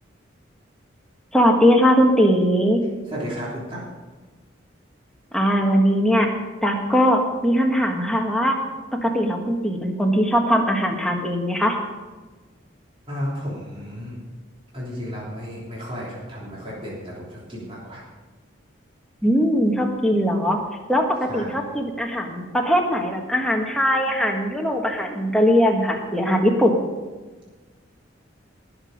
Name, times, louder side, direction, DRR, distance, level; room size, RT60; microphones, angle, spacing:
voice 1, 1.3-2.8 5.3-6.3 6.6-8.6 8.9-11.8 19.2-20.6 20.9-26.7, equal, 5° left, 0 dB, 1.4 m, -20 dB
voice 2, 3.0-3.8 13.1-14.2 14.7-18.0 21.3-21.5, equal, 30° right, -6 dB, 3.2 m, -33 dB
19.0 x 7.0 x 5.2 m, 1.3 s
head